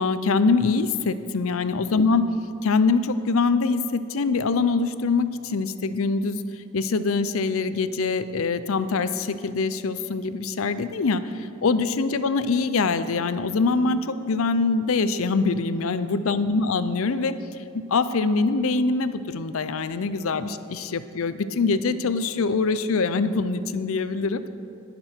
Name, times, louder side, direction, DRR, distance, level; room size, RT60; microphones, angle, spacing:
voice 1, 0.0-2.2 2.6-6.4 6.7-17.4 17.7-24.5, left 4 dB, 65° left, 12 dB, 0.5 m, -24 dB
19.5 x 6.8 x 4.5 m, 2.6 s
head